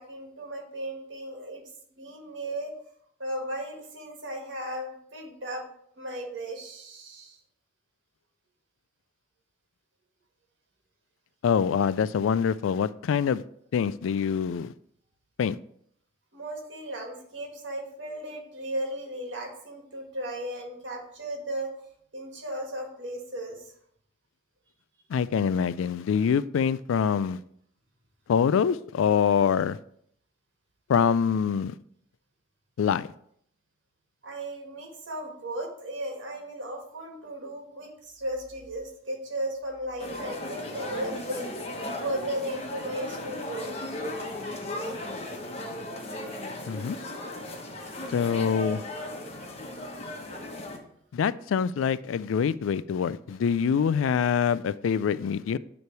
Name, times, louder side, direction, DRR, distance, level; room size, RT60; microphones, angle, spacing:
voice 1, 0.0-1.6 2.0-2.7 3.2-5.7 6.0-7.4 16.3-21.7 22.1-23.7 34.2-41.6 42.0-43.7, right 1 dB, 70° right, 1.8 m, -35 dB
voice 2, 11.4-13.4 13.7-14.7 15.4-15.6 25.1-27.4 28.3-29.8 30.9-31.8 32.8-33.1 46.7-47.0 48.1-48.8 51.1-55.6, left 7 dB, 90° left, 0.3 m, -25 dB
sound 1, 40.0-50.8, left 1 dB, 30° left, 1.0 m, -36 dB
9.5 x 3.2 x 4.6 m
head